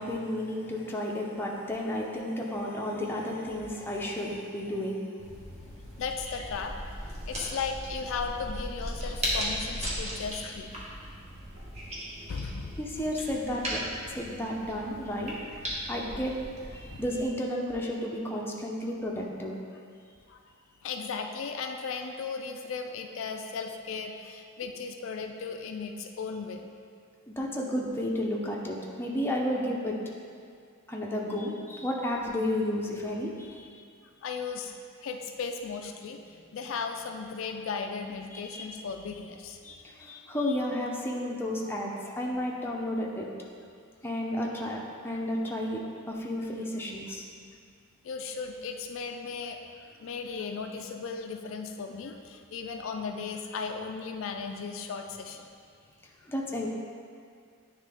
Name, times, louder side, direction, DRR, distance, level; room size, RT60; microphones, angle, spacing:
voice 1, 0.0-5.1 12.8-13.8 14.1-15.4 15.9-16.4 16.7-19.5 27.3-30.0 30.9-33.7 38.3-38.9 39.6-43.3 44.0-47.3 56.2-56.7, left 1 dB, 10° left, -2 dB, 0.6 m, -32 dB
sound 1, 5.2-17.3, equal, 30° right, 1.1 m, -37 dB
voice 2, 5.9-10.7 12.3-12.7 16.9-17.0 20.3-20.4 20.8-26.7 34.2-34.7 35.0-36.2 36.5-39.6 48.0-49.6 50.0-55.5, left 5 dB, 65° left, 4 dB, 0.4 m, -36 dB
9.5 x 3.3 x 3.5 m, 2.2 s
head